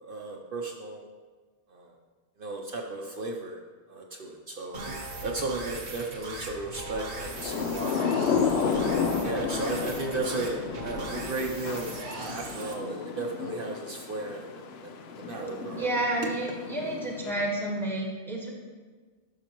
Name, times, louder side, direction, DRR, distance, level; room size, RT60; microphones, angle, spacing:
voice 1, 0.0-1.0 1.7-1.9 2.4-3.6 3.9-4.8 5.2-8.5 9.2-15.9, right 2 dB, 60° right, 1 dB, 0.8 m, -35 dB
sound 1, 4.7-12.7, right 2 dB, 75° right, 1.3 m, -39 dB
Thunder / Rain, 7.1-17.7, left 6 dB, 70° left, 0.8 m, -32 dB
voice 2, 15.7-18.5, right 1 dB, ahead, -1 dB, 1.1 m, -30 dB
11.0 x 5.8 x 2.9 m, 1.4 s
omnidirectional pair, 1.1 m